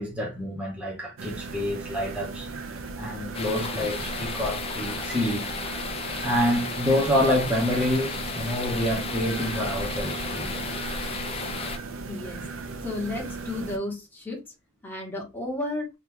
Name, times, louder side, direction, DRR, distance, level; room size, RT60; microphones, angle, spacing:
voice 1, 0.0-2.5 3.0-5.5 6.2-10.6, left 1 dB, 5° right, 0.8 m, -27 dB
sound 1, 1.2-13.8, right 3 dB, 70° right, 0.6 m, -37 dB
sound 2, 3.3-11.8, left 3 dB, 30° left, 0.5 m, -33 dB
voice 2, 12.1-12.4 12.8-14.4 14.8-15.9, left 2 dB, 10° left, 1.1 m, -32 dB
2.9 x 2.4 x 3.5 m
head